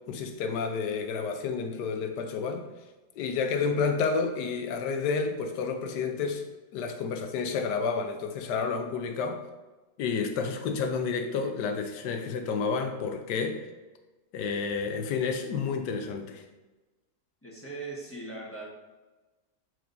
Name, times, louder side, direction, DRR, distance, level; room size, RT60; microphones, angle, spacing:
voice 1, 0.1-2.6 3.2-6.5 6.7-9.4 10.0-13.7 14.3-16.4, left 5 dB, 75° left, 6 dB, 1.3 m, -30 dB
voice 2, 17.4-18.7, right 3 dB, 10° left, -4 dB, 1.1 m, -39 dB
9.1 x 4.7 x 2.6 m, 1.2 s
omnidirectional pair, 1.9 m